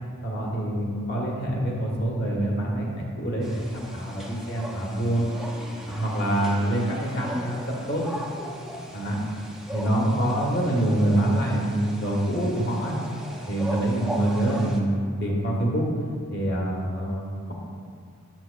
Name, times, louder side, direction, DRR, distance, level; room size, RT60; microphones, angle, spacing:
voice 1, 0.2-5.3 5.8-8.4 8.9-9.3 9.7-13.0 13.5-15.8 16.3-17.5, right 1 dB, 50° left, -2 dB, 1.3 m, -26 dB
sound 1, 3.4-14.8, equal, ahead, 0.4 m, -38 dB
7.6 x 7.1 x 2.3 m, 2.2 s
head